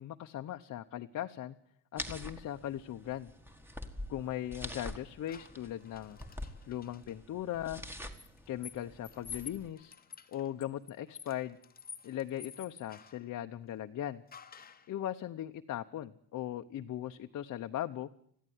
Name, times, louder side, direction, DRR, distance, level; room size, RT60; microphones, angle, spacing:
voice 1, 0.0-1.6 1.9-3.3 4.1-6.2 6.7-7.8 8.5-9.9 10.3-11.6 12.0-14.2 14.9-18.1, left 12 dB, 45° left, 5 dB, 0.8 m, -39 dB
sound 1, 2.0-9.7, left 1 dB, 5° right, 1.6 m, -46 dB
sound 2, 5.3-7.1 8.1-13.3 14.3-14.9, left 6 dB, 25° left, 1.0 m, -50 dB
21.5 x 15.0 x 9.4 m, 0.66 s
cardioid pair, 160°, 39 cm